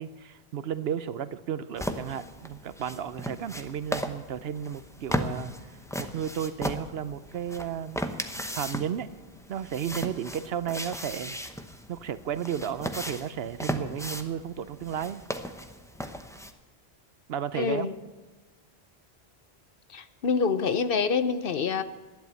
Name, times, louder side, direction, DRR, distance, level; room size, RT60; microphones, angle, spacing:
voice 1, 0.0-5.5 6.0-8.0 8.5-9.1 9.5-11.4 11.9-15.2 17.3-17.9, right 9 dB, 70° right, 14 dB, 0.9 m, -33 dB
sound 1, 1.8-16.5, equal, 5° left, 0.7 m, -36 dB
voice 2, 17.5-18.0 19.9-21.8, left 5 dB, 60° left, 12 dB, 0.9 m, -26 dB
12.0 x 10.5 x 8.2 m, 1.3 s
omnidirectional pair, 1.1 m